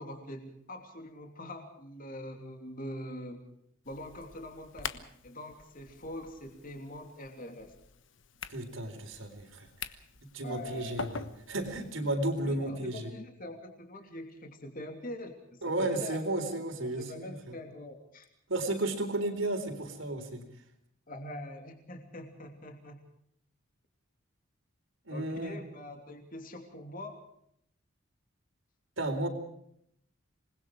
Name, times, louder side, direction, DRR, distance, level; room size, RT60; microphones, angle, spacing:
voice 1, 0.0-3.4 3.8-7.7 10.4-11.0 12.4-16.2 16.7-18.3 21.1-23.0 25.1-27.2, left 1 dB, 45° left, 4 dB, 3.0 m, -44 dB
sound 1, 3.8-11.9, left 5 dB, 65° left, 1.3 m, -45 dB
voice 2, 8.5-9.7 10.3-13.1 15.6-17.6 18.5-20.4 25.1-25.6 29.0-29.3, right 2 dB, 75° right, 6 dB, 4.0 m, -33 dB
27.0 x 20.5 x 4.9 m, 0.71 s
head